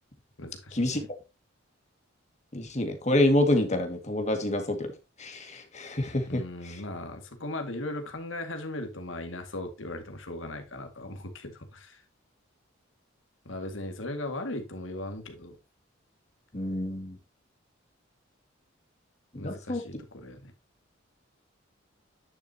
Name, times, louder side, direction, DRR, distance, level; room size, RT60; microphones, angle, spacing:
voice 1, 0.4-1.1 6.3-12.0 13.5-15.6 19.4-20.5, left 1 dB, 70° left, 2.0 m, -38 dB
voice 2, 2.5-4.9 5.2-6.8 16.5-17.2 19.3-19.8, left 1 dB, 35° left, 2.0 m, -27 dB
10.0 x 6.5 x 2.8 m
head